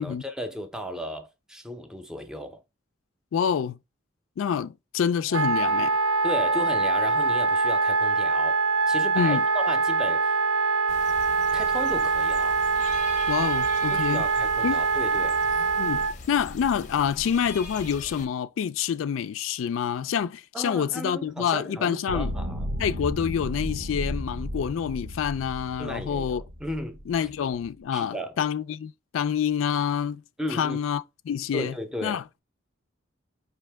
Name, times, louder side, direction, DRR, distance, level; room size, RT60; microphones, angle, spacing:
voice 1, 0.0-2.6 6.2-8.6 8.9-10.4 11.5-12.6 13.9-15.4 20.5-22.7 25.8-26.3 26.6-27.0 27.9-28.3 30.4-30.8 31.5-32.2, equal, 5° right, 0.6 m, -35 dB
voice 2, 3.3-3.8 4.4-5.9 9.1-9.4 13.3-14.3 14.6-14.8 15.8-22.3 22.8-26.4 27.1-30.2 30.5-31.7 32.0-32.2, left 8 dB, 80° left, 0.3 m, -27 dB
Wind instrument woodwind instrument, 5.3-16.1, right 4 dB, 75° right, 0.4 m, -24 dB
sound 1, 10.9-18.3, left 3 dB, 40° left, 0.6 m, -41 dB
sound 2, 22.1-27.8, equal, 60° right, 0.9 m, -34 dB
5.3 x 2.8 x 3.4 m
head